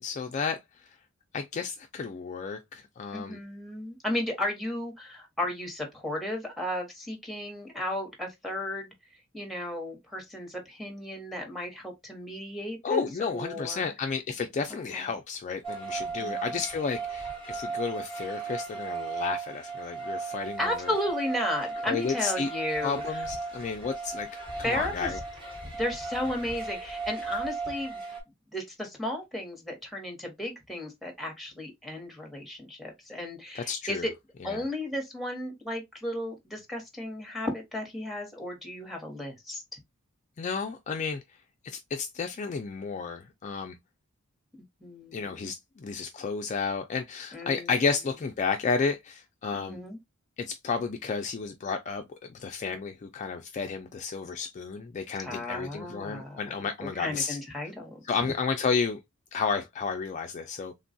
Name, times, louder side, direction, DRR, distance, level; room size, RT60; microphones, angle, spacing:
voice 1, 0.0-0.6 1.3-3.4 12.8-20.9 21.9-22.5 22.8-24.3 24.6-25.2 33.6-34.1 34.4-34.6 40.4-41.2 41.6-43.8 45.1-49.8 50.4-52.0 52.3-57.4 58.1-59.0 59.3-60.7, left 5 dB, 35° left, 0.3 m, -32 dB
voice 2, 3.1-8.9 9.3-13.9 14.7-15.1 16.2-16.6 20.6-23.0 24.6-25.1 25.7-28.0 28.5-34.1 34.4-39.6 44.8-45.5 47.3-47.8 49.5-50.0 55.2-56.4 56.8-58.0, left 1 dB, ahead, 0.9 m, -34 dB
sound 1, 15.6-28.2, right 3 dB, 25° right, 1.1 m, -36 dB
3.4 x 2.2 x 2.5 m
head